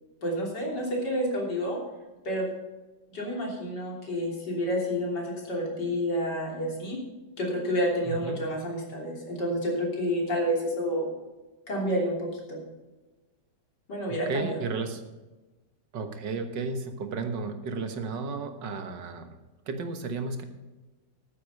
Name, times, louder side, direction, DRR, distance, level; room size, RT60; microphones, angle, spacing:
voice 1, 0.2-1.8 2.2-2.5 3.1-7.0 7.4-11.1 11.7-12.6 13.9-14.6, equal, 70° left, -1 dB, 3.9 m, -29 dB
voice 2, 8.1-8.4 14.3-15.0 15.9-19.4 19.7-20.4, right 4 dB, 80° right, 6 dB, 2.0 m, -33 dB
12.5 x 9.7 x 5.4 m, 1.2 s
omnidirectional pair, 1.9 m